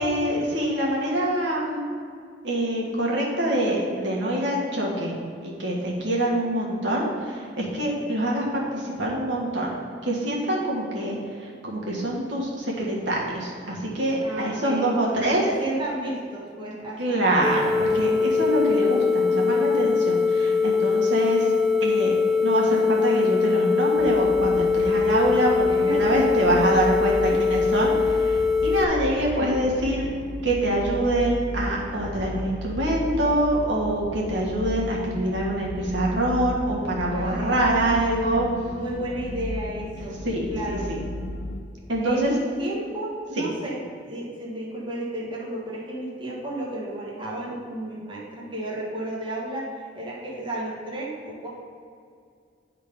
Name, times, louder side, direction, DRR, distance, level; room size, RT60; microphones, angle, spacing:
voice 1, 0.0-1.8 2.4-5.1 5.4-9.7 10.0-15.4 17.0-21.5 21.8-22.1 22.4-30.0 30.4-38.5 40.2-41.0 41.9-42.3 43.4-43.5, right 1 dB, 75° right, -4 dB, 1.6 m, -25 dB
voice 2, 14.2-17.2 25.7-26.3 27.3-27.4 29.3-29.6 37.1-38.0 38.8-40.2 40.5-40.9 42.0-51.5, right 1 dB, 25° right, -5 dB, 1.2 m, -33 dB
sound 1, 17.4-28.8, left 5 dB, ahead, 0.4 m, -22 dB
sound 2, 23.9-41.6, left 1 dB, 80° left, 0.6 m, -35 dB
10.0 x 3.8 x 5.0 m, 2.3 s
head